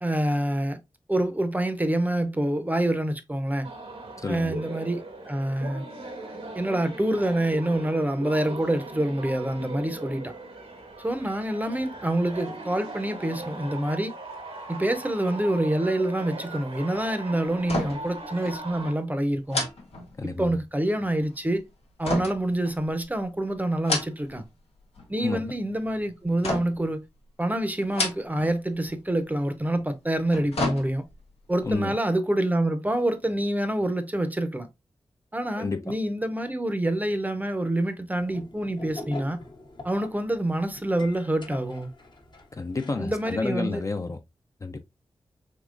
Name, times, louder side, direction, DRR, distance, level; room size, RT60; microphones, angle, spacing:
voice 1, 0.0-0.8 1.1-3.7 4.3-5.8 6.5-10.3 11.0-14.1 14.7-19.7 20.2-21.6 22.0-24.4 25.1-27.0 27.4-31.0 31.5-34.7 35.3-39.4 39.8-41.9 43.0-43.8, right 1 dB, 15° right, 0.6 m, -26 dB
sound 1, 3.6-18.9, right 2 dB, 75° right, 1.0 m, -39 dB
voice 2, 4.2-4.6 20.2-20.6 25.2-25.5 31.6-32.0 35.6-35.9 42.5-44.2 44.6-44.8, left 3 dB, 30° left, 0.4 m, -30 dB
sound 2, 17.6-18.2 18.5-18.6 19.5-20.6 22.0-23.2 23.7-24.5 24.8-25.4 26.4-26.9 27.8-28.6 28.9-29.0 30.1-31.3 31.7-31.8, left 2 dB, 85° left, 0.8 m, -31 dB
sound 3, 38.1-43.5, left 2 dB, 50° left, 0.8 m, -44 dB
3.6 x 2.8 x 2.4 m
cardioid pair, 45°, 10 cm